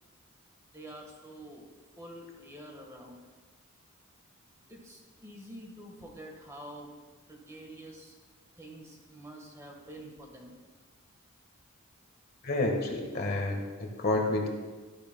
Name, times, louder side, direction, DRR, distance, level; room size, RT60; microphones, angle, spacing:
voice 1, 0.7-1.7 2.0-3.2 4.7-6.9 7.3-8.1 8.6-10.5, right 1 dB, 15° right, 0 dB, 1.3 m, -47 dB
voice 2, 12.4-14.5, left 2 dB, 45° left, 2 dB, 1.3 m, -29 dB
13.5 x 10.5 x 2.2 m, 1.3 s
head